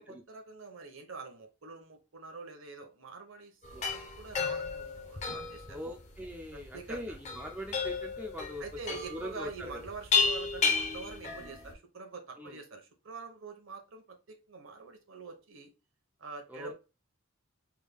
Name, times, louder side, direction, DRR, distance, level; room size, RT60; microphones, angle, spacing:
voice 1, 0.0-5.8 6.5-7.2 8.6-15.7 16.2-16.7, right 4 dB, 65° right, 5 dB, 0.8 m, -46 dB
sound 1, 3.6-11.7, left 4 dB, 30° left, 0.7 m, -33 dB
voice 2, 5.7-8.6 9.1-9.9 12.4-12.6 16.5-16.7, equal, 5° right, 1 dB, 0.4 m, -42 dB
3.5 x 2.3 x 3.3 m, 0.29 s
head